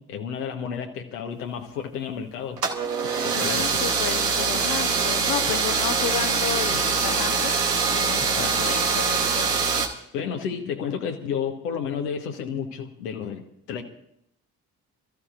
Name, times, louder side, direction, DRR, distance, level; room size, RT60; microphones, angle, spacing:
voice 1, 0.0-2.6 3.2-3.8 6.7-6.8 8.4-8.6 10.1-13.4 13.7-13.8, left 7 dB, 80° left, 3 dB, 1.4 m, -31 dB
sound 1, 2.6-9.9, right 5 dB, 90° right, 1.1 m, -23 dB
voice 2, 3.3-7.5 7.9-9.5, left 11 dB, 50° left, 10 dB, 1.0 m, -32 dB
26.0 x 14.0 x 2.6 m, 0.75 s
figure-of-eight pair, 40°, 47 cm